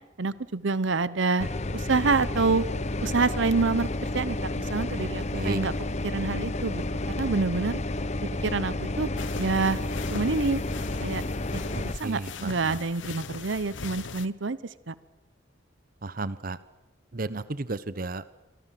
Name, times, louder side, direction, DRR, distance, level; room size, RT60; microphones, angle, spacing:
voice 1, 0.2-2.6 3.0-3.9 4.1-5.7 6.1-6.8 7.2-7.8 8.4-9.1 9.4-9.8 10.1-10.6 11.0-11.2 11.5-14.6 14.9-15.0, right 4 dB, 75° right, 17 dB, 0.8 m, -27 dB
sound 1, 1.4-12.0, left 2 dB, 35° left, 0.9 m, -31 dB
sound 2, 9.2-14.3, left 5 dB, 80° left, 1.0 m, -40 dB
voice 2, 11.7-12.8 16.0-16.6 17.1-18.3, right 2 dB, 50° right, 16 dB, 0.9 m, -33 dB
28.0 x 24.0 x 7.6 m, 1.0 s
head